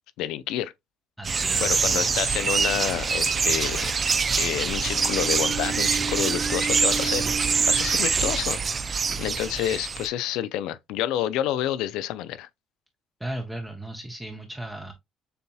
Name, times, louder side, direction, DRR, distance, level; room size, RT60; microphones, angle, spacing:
voice 1, 0.2-0.7 1.6-3.9 4.4-12.5, left 12 dB, 85° left, 0.4 m, -29 dB
voice 2, 1.2-2.1 13.2-14.9, right 1 dB, 5° right, 0.7 m, -35 dB
sound 1, 1.2-10.1, right 5 dB, 25° right, 0.3 m, -25 dB
Bowed string instrument, 4.7-8.8, right 6 dB, 70° right, 2.2 m, -35 dB
6.8 x 2.8 x 2.3 m
cardioid pair, 140°, 0 cm